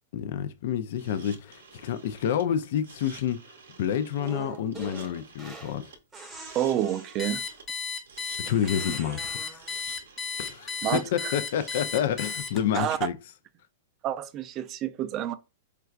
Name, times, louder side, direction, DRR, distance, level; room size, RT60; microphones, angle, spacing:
voice 1, 0.1-3.4 3.8-5.9 8.4-9.6 10.4-13.2, left 9 dB, 60° left, 0.3 m, -29 dB
sound 1, 0.9-12.8, right 5 dB, 85° right, 0.7 m, -51 dB
sound 2, 4.2-5.8 6.1-7.6 8.4-9.8, right 3 dB, 10° right, 0.8 m, -44 dB
voice 2, 6.5-7.4 10.8-11.3 12.7-13.0 14.0-15.3, right 11 dB, 30° right, 0.3 m, -29 dB
Alarm, 7.2-12.8, left 5 dB, 20° left, 0.7 m, -34 dB
4.5 x 2.2 x 2.4 m
hypercardioid pair, 135°, 0 cm